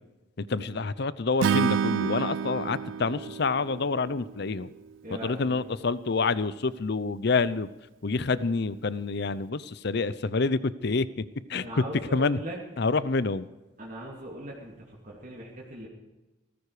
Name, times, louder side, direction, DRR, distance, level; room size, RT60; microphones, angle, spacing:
voice 1, 0.4-4.7 5.2-7.7 8.0-11.2 11.5-11.8 12.1-12.4 12.8-13.5, left 4 dB, 60° left, 17 dB, 0.7 m, -27 dB
Acoustic guitar / Strum, 1.4-4.7, right 7 dB, 85° right, 0.4 m, -29 dB
voice 2, 5.0-5.6 11.5-12.6 13.8-15.9, right 1 dB, 45° right, -2 dB, 2.8 m, -40 dB
18.5 x 15.0 x 5.0 m, 1.1 s
head